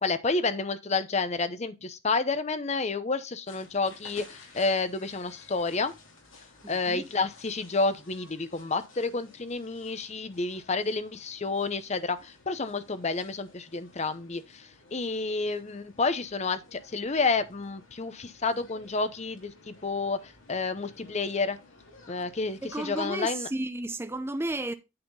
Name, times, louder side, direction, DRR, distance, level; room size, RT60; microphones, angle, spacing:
voice 1, 0.0-5.9 6.7-21.6 22.1-23.5, left 3 dB, 35° left, 0.7 m, -30 dB
sound 1, 3.5-23.3, left 3 dB, 80° left, 2.6 m, -54 dB
voice 2, 6.6-7.0 22.6-24.7, right 1 dB, 10° right, 0.5 m, -33 dB
8.7 x 4.2 x 5.4 m
head